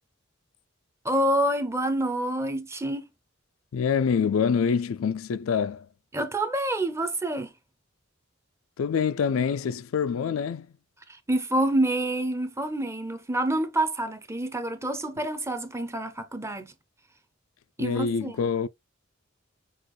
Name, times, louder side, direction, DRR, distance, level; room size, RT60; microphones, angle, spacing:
voice 1, 1.0-3.1 6.1-7.5 11.3-16.7 17.8-18.3, right 1 dB, 15° right, 0.7 m, -27 dB
voice 2, 3.7-5.9 8.8-10.7 17.8-18.7, left 6 dB, 80° left, 0.4 m, -26 dB
6.4 x 2.4 x 3.1 m
head